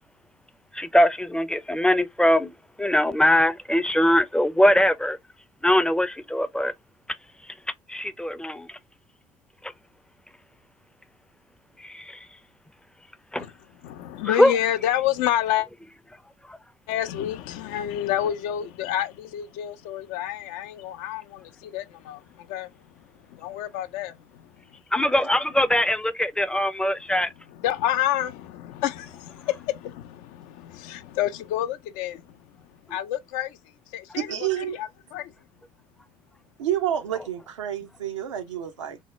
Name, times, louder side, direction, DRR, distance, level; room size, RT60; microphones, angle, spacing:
voice 1, 0.7-2.5 2.8-5.2 5.6-6.7 7.9-8.8 9.6-9.7 11.8-12.2 13.3-13.5 14.3-14.5 24.9-27.3, left 1 dB, 5° left, 0.4 m, -22 dB
voice 2, 13.8-15.7 16.9-22.7 23.3-24.5 27.5-32.2 32.9-33.6 33.9-35.3, left 12 dB, 70° left, 0.4 m, -29 dB
voice 3, 34.1-34.8 36.6-39.0, right 11 dB, 90° right, 0.5 m, -29 dB
3.4 x 2.1 x 3.0 m
hypercardioid pair, 55°, 15 cm